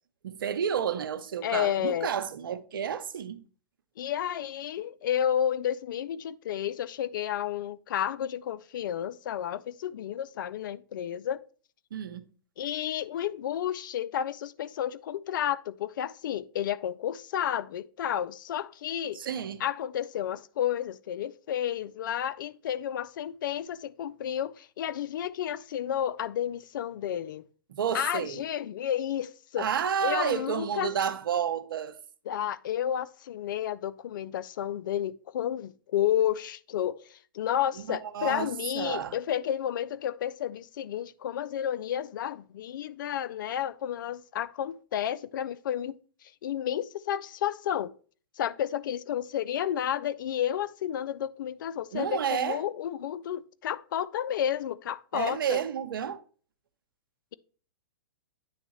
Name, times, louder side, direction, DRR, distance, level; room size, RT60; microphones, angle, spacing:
voice 1, 0.2-3.4 11.9-12.3 19.1-19.6 27.7-28.4 29.6-32.0 37.9-39.2 51.9-52.6 55.1-56.2, right 8 dB, 75° right, 0.7 m, -31 dB
voice 2, 1.4-2.1 4.0-11.4 12.6-19.2 19.6-27.4 27.9-29.7 30.0-30.9 32.3-45.9 46.4-47.9 48.4-55.6, left 10 dB, 65° left, 0.4 m, -31 dB
9.4 x 3.5 x 3.1 m
hypercardioid pair, 120°, 11 cm